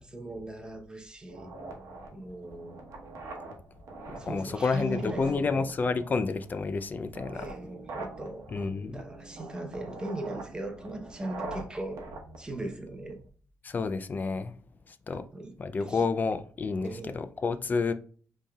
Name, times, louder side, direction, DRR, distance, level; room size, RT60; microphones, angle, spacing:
voice 1, 0.0-1.5 2.1-2.8 4.2-5.7 7.3-8.5 8.9-12.1 12.4-13.2 15.1-16.0 16.8-17.2, right 1 dB, 15° right, 0.7 m, -39 dB
sound 1, 1.3-13.3, right 2 dB, 65° right, 1.0 m, -44 dB
voice 2, 4.1-7.5 8.5-9.0 13.6-14.5 15.1-15.2 15.6-17.9, left 4 dB, 30° left, 0.4 m, -30 dB
5.3 x 3.2 x 2.3 m
cardioid pair, 135°, 6 cm